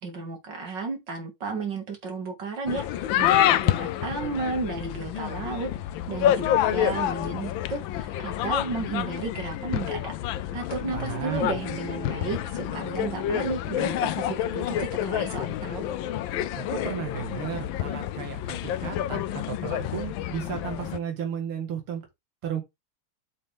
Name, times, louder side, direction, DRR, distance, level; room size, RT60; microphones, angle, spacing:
voice 1, 0.0-5.7 6.1-15.8, right 3 dB, 55° right, 2.6 m, -33 dB
sound 1, 2.7-21.0, left 11 dB, 75° left, 1.3 m, -28 dB
sound 2, 10.7-14.4 14.8-14.9, right 4 dB, 25° right, 0.7 m, -44 dB
voice 2, 10.9-11.6 16.5-22.0 22.4-22.6, right 7 dB, 85° right, 2.5 m, -34 dB
7.5 x 5.4 x 3.5 m
omnidirectional pair, 2.3 m